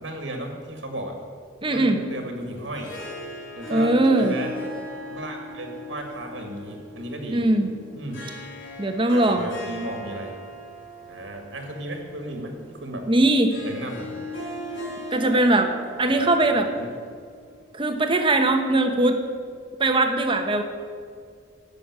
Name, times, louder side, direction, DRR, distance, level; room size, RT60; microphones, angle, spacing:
voice 1, 0.0-1.2 1.7-2.9 3.6-4.5 5.1-7.4 8.0-8.3 9.1-10.3 11.1-13.0 13.6-14.2 16.0-16.9, right 1 dB, 75° right, 3 dB, 1.8 m, -35 dB
voice 2, 1.6-2.0 3.7-4.4 7.3-7.7 8.8-9.5 13.1-13.6 15.1-15.7 16.0-16.7 17.7-19.2 19.8-20.6, right 2 dB, 25° right, 6 dB, 1.0 m, -20 dB
Harp, 2.5-17.7, left 1 dB, 80° left, 3.1 m, -38 dB
12.0 x 6.6 x 8.9 m, 2.1 s
head